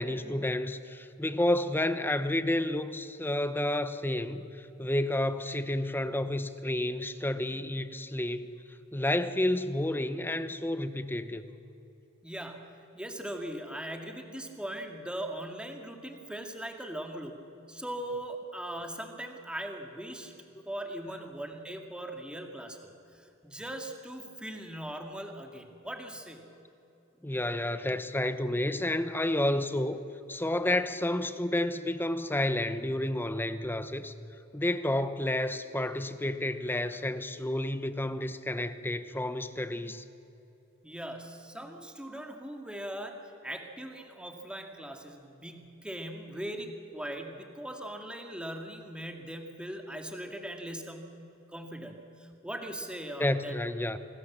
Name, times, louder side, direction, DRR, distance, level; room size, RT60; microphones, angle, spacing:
voice 1, 0.0-8.6 8.9-11.5 27.2-30.0 30.3-34.1 34.5-40.0 53.2-54.0, left 1 dB, 10° left, 11 dB, 0.9 m, -30 dB
voice 2, 12.2-17.4 17.7-20.3 20.7-26.5 40.8-51.2 51.5-53.9, right 1 dB, 5° right, 4 dB, 2.1 m, -40 dB
26.5 x 19.5 x 7.4 m, 2.9 s
head